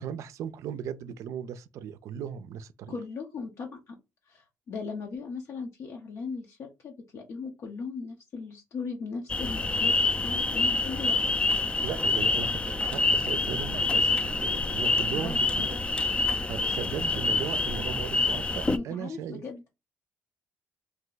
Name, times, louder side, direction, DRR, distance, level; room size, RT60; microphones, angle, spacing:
voice 1, 0.0-3.0 11.8-15.8 16.5-19.4, right 8 dB, 75° right, 0.4 m, -37 dB
voice 2, 2.9-4.0 4.3-10.0 10.2-11.3 15.1-15.8 18.7-19.6, left 4 dB, 65° left, 0.7 m, -38 dB
sound 1, 9.3-18.8, left 3 dB, 20° left, 0.4 m, -27 dB
2.7 x 2.2 x 3.9 m
cardioid pair, 80°, 5 cm